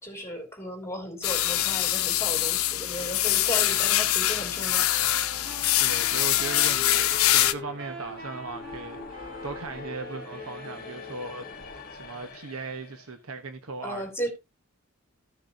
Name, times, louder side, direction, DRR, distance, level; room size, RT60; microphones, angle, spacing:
voice 1, 0.0-4.9 13.8-14.3, equal, 15° left, 3.2 m, -35 dB
sound 1, 1.2-7.5, left 13 dB, 85° left, 0.7 m, -24 dB
sound 2, 3.4-11.4, equal, 60° right, 6.8 m, -43 dB
sound 3, 4.9-13.1, left 4 dB, 45° left, 1.6 m, -44 dB
voice 2, 5.7-14.1, right 3 dB, 90° right, 1.1 m, -38 dB
15.0 x 6.5 x 2.8 m
head